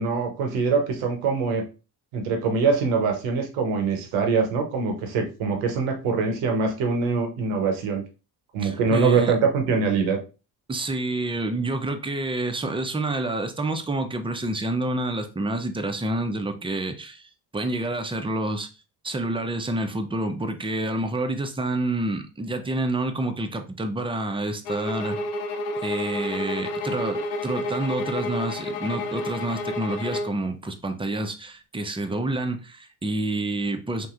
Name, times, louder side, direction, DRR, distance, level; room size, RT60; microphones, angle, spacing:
voice 1, 0.0-1.6 2.1-8.0 8.5-10.2, right 4 dB, 85° right, 0.9 m, -23 dB
voice 2, 8.6-9.4 10.7-18.7 19.0-25.2 25.8-34.1, right 2 dB, 10° right, 0.5 m, -28 dB
sound 1, 24.6-30.4, left 1 dB, 85° left, 0.5 m, -30 dB
3.1 x 2.6 x 2.4 m
hypercardioid pair, 45°, 47 cm